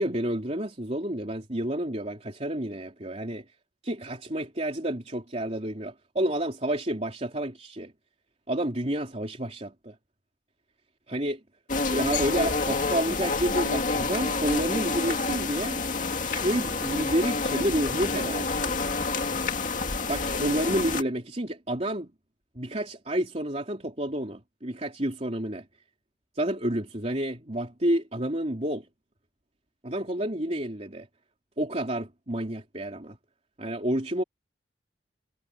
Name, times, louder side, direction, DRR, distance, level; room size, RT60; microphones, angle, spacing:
voice 1, 0.0-3.5 3.8-7.9 8.5-10.0 11.1-11.4 11.9-15.8 16.3-18.8 20.1-22.1 22.6-25.7 26.4-28.9 29.8-31.1 31.6-33.2 33.6-34.2, right 1 dB, 35° right, 3.5 m, -30 dB
sound 1, 11.7-21.0, left 4 dB, 45° left, 2.2 m, -28 dB
head